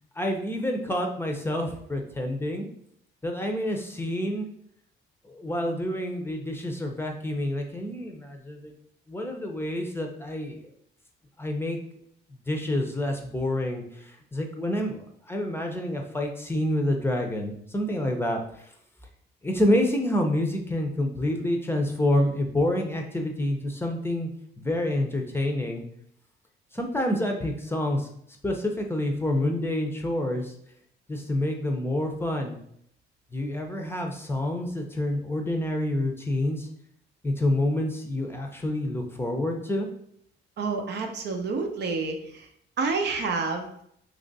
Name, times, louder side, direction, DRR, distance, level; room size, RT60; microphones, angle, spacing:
voice 1, 0.2-2.7 3.2-4.5 5.2-8.7 9.1-10.6 11.4-11.8 12.3-18.7 19.4-24.3 24.6-25.8 26.7-28.1 28.4-30.5 31.1-32.6 33.3-36.7 37.2-39.9, left 1 dB, 10° left, 3 dB, 0.6 m, -28 dB
voice 2, 40.6-42.5 42.8-43.7, right 4 dB, 60° right, 4 dB, 0.6 m, -29 dB
3.0 x 2.5 x 4.0 m, 0.69 s
cardioid pair, 90°, 20 cm